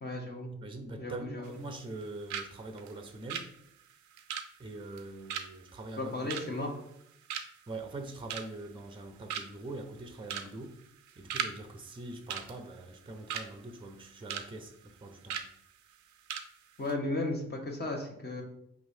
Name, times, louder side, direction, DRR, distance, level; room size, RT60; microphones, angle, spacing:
voice 1, 0.0-0.5 1.0-1.6 6.0-6.7 16.8-18.4, left 2 dB, 35° left, 1.1 m, -35 dB
voice 2, 0.6-3.5 4.6-6.6 7.7-10.8 11.2-15.4, right 2 dB, 15° right, 0.6 m, -43 dB
sound 1, 1.4-2.0 2.3-2.5 2.8-7.0 7.3-7.7 8.1-8.7 9.0-9.1 9.3-9.7 10.2-10.5 10.8-11.5 11.8-12.0 12.3-13.5 13.9-14.5 14.7-14.9 15.3-15.5 15.9-16.0 16.3-16.5 16.8-16.9, right 8 dB, 70° right, 0.5 m, -38 dB
4.6 x 3.1 x 2.7 m
hypercardioid pair, 40°, 31 cm